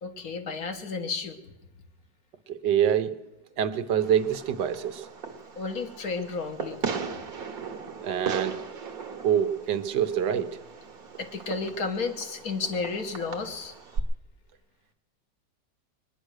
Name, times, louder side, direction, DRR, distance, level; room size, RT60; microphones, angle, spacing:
voice 1, 0.0-1.4 5.5-6.8 11.2-13.7, left 4 dB, 60° left, 7 dB, 1.6 m, -32 dB
voice 2, 2.5-3.1 3.6-5.1 8.0-8.6 9.2-10.5, right 9 dB, 80° right, 11 dB, 1.5 m, -25 dB
Fireworks, 4.0-14.0, right 5 dB, 55° right, 1.6 m, -38 dB
21.5 x 10.0 x 6.4 m, 0.97 s
omnidirectional pair, 1.9 m